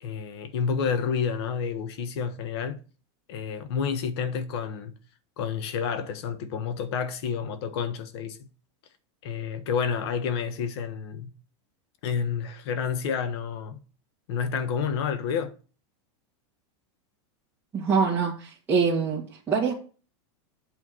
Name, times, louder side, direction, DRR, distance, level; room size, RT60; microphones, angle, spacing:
voice 1, 0.0-2.8 3.3-4.9 5.4-8.4 9.2-11.3 12.0-13.8 14.3-15.5, left 6 dB, 60° left, 1.2 m, -29 dB
voice 2, 17.7-19.7, right 5 dB, 10° right, 1.7 m, -25 dB
8.6 x 3.6 x 6.1 m
supercardioid pair, 155°, 15 cm